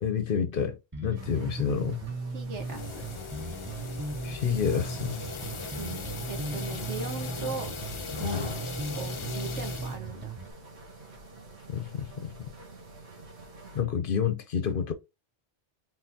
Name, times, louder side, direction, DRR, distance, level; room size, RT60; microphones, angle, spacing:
voice 1, 0.0-2.0 4.2-5.2 8.2-8.5 11.7-12.5 13.7-14.9, left 7 dB, 55° left, 0.8 m, -29 dB
Bass guitar, 0.9-10.5, right 3 dB, 10° right, 0.6 m, -37 dB
sound 1, 1.1-13.8, right 2 dB, 65° right, 1.6 m, -49 dB
voice 2, 2.3-3.1 5.7-6.0 6.3-7.7 8.2-8.5 8.9-10.4, right 5 dB, 85° right, 1.5 m, -38 dB
sound 2, 2.5-10.0, left 5 dB, 40° left, 0.4 m, -39 dB
4.3 x 3.8 x 2.7 m
omnidirectional pair, 1.2 m